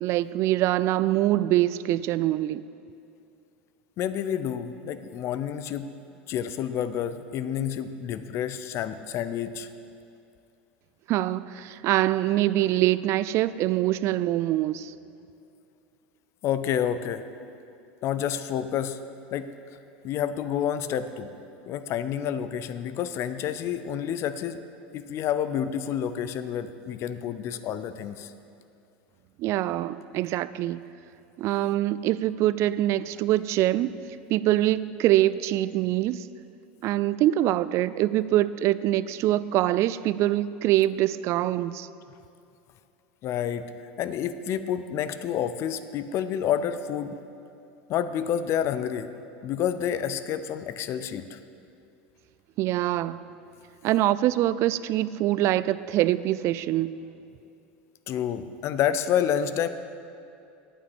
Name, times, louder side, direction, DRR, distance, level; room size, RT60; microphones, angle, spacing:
voice 1, 0.0-2.6 11.1-14.9 29.4-30.8 31.4-33.9 34.3-36.3 36.8-41.9 52.6-53.2 53.8-56.9, right 14 dB, 50° right, 0.3 m, -24 dB
voice 2, 4.0-5.9 6.3-9.7 16.4-17.5 18.0-19.0 19.3-19.5 20.0-21.3 21.6-24.6 24.9-28.3 43.2-43.7 44.0-47.2 47.9-49.1 49.4-51.4 58.1-59.7, left 9 dB, 45° left, 0.6 m, -29 dB
8.9 x 8.9 x 7.1 m
hypercardioid pair, 100°, 6 cm